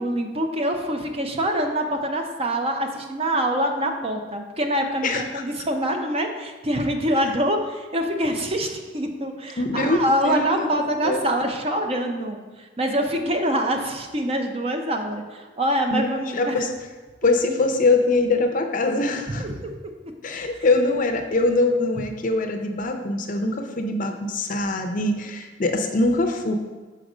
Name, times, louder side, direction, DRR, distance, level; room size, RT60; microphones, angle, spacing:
voice 1, 0.0-16.5 19.3-19.7, equal, 30° right, 4 dB, 0.6 m, -25 dB
voice 2, 9.6-10.7 11.0-11.2 15.9-16.7 17.2-19.4 20.2-26.5, left 2 dB, 45° left, 5 dB, 0.6 m, -23 dB
6.3 x 4.4 x 4.9 m, 1.3 s
head